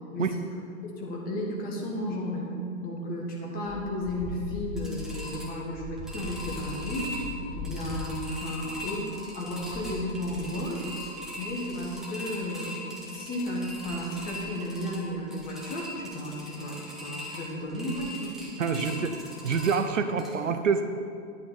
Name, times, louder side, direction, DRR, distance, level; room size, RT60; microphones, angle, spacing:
voice 1, 0.1-0.5 0.9-2.5 2.8-7.2 7.5-10.8 11.4-12.8 13.1-18.3 18.7-19.0, left 1 dB, 20° left, -2 dB, 1.7 m, -33 dB
sound 1, 3.6-20.3, left 1 dB, ahead, 1.2 m, -39 dB
voice 2, 18.6-19.1 19.4-20.9, right 6 dB, 60° right, 8 dB, 0.7 m, -26 dB
10.5 x 8.4 x 4.1 m, 2.3 s
figure-of-eight pair, 115°, 42 cm